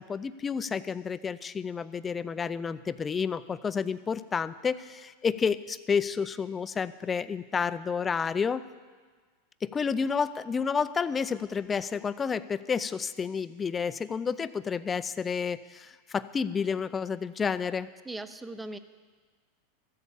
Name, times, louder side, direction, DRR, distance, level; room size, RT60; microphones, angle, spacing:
voice 1, 0.0-8.6 9.6-17.9, left 6 dB, 20° left, 15 dB, 0.5 m, -30 dB
voice 2, 18.0-18.8, right 2 dB, 10° right, 12 dB, 0.7 m, -39 dB
13.5 x 8.2 x 7.3 m, 1.5 s
hypercardioid pair, 105°, 0 cm